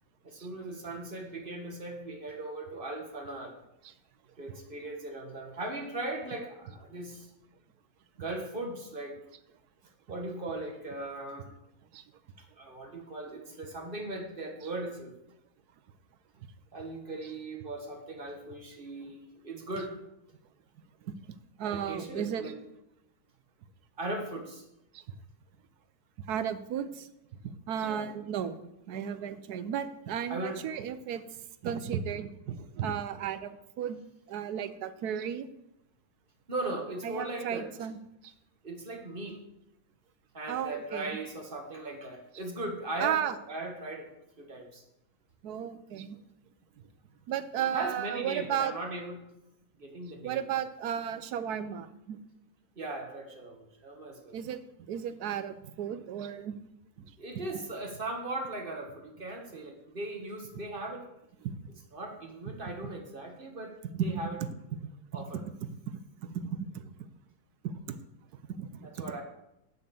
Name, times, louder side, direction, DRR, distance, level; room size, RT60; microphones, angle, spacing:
voice 1, 0.2-3.5 4.4-7.3 8.2-9.2 10.1-11.5 12.4-15.1 16.7-20.0 21.6-22.5 24.0-24.6 27.8-28.1 30.3-30.6 36.5-37.7 38.6-39.4 40.3-43.2 43.5-44.1 44.4-44.8 47.6-49.2 49.8-50.4 52.7-54.4 57.2-61.1 61.9-64.4 65.1-65.4 68.8-69.2, right 2 dB, 35° right, 3 dB, 1.6 m, -38 dB
voice 2, 21.6-22.4 24.9-25.0 26.3-27.1 27.7-31.2 31.6-34.0 34.3-35.5 37.0-38.0 38.2-38.3 40.5-41.2 43.0-43.4 45.4-46.2 47.3-48.7 50.2-52.2 54.3-54.6 54.9-56.6 61.4-61.5 63.9-64.1 65.9-66.9 67.9-68.0 68.6-68.9, right 9 dB, 80° right, 12 dB, 1.2 m, -34 dB
8.7 x 6.5 x 6.9 m, 0.85 s
omnidirectional pair, 1.7 m